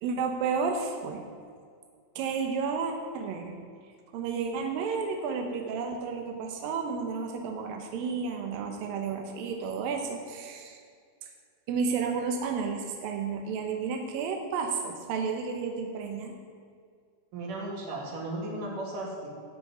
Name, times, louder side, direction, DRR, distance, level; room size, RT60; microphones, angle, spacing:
voice 1, 0.0-1.3 2.2-3.6 4.1-10.8 11.7-16.4, right 5 dB, 80° right, 3 dB, 2.1 m, -32 dB
voice 2, 17.3-19.3, right 2 dB, 45° right, -2 dB, 3.9 m, -35 dB
17.0 x 6.4 x 9.4 m, 2.2 s
omnidirectional pair, 5.7 m